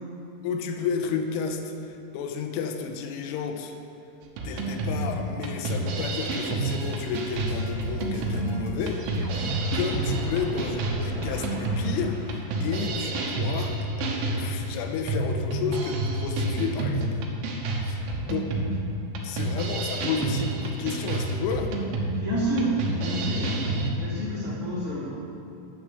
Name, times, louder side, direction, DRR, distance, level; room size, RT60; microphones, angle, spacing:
voice 1, 0.4-3.8 4.4-9.0 9.3-17.2 17.8-18.5 19.2-21.7, left 6 dB, 90° left, 5 dB, 3.4 m, -32 dB
sound 1, 4.4-23.9, right 2 dB, 85° right, 3.5 m, -29 dB
sound 2, 6.7-13.0, equal, 65° right, 3.4 m, -39 dB
voice 2, 22.1-25.1, right 1 dB, 65° left, -9 dB, 0.7 m, -30 dB
10.5 x 6.3 x 8.1 m, 2.7 s
omnidirectional pair, 5.5 m